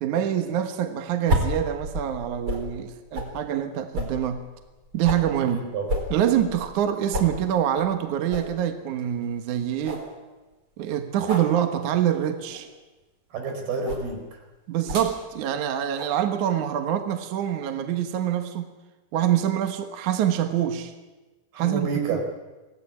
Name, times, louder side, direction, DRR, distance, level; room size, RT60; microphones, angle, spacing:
voice 1, 0.0-4.4 4.9-5.6 6.1-10.1 10.8-12.7 14.7-18.7 19.1-20.9 21.6-22.2, right 10 dB, 60° right, 8 dB, 2.6 m, -25 dB
sound 1, 1.3-2.7 3.1-3.3 3.9-5.3 5.9-6.8 7.1-7.3 7.7-7.8 8.3-8.5 9.0-9.1 9.4-9.5 9.8-10.1 11.2-11.5 12.4-12.7 13.8-14.1 14.8-15.1 15.9-16.2, equal, 35° right, 4.9 m, -30 dB
voice 2, 5.5-5.9 13.3-14.4 21.5-22.2, right 4 dB, 85° right, 4 dB, 5.9 m, -29 dB
24.5 x 18.0 x 9.9 m, 1.2 s
omnidirectional pair, 4.3 m